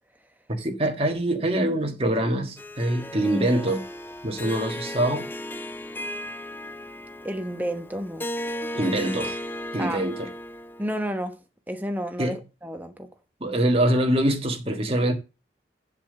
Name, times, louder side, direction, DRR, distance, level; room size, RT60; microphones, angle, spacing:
voice 1, 0.5-3.8 4.2-5.2 8.7-9.4 9.7-10.3 12.2-12.4 13.4-15.1, right 1 dB, 30° right, 1.6 m, -24 dB
Harp, 2.6-11.0, left 1 dB, 10° left, 0.4 m, -35 dB
voice 2, 7.2-8.3 9.8-10.0 10.8-11.4 11.7-13.1, equal, 10° right, 1.0 m, -31 dB
7.4 x 6.8 x 6.7 m
head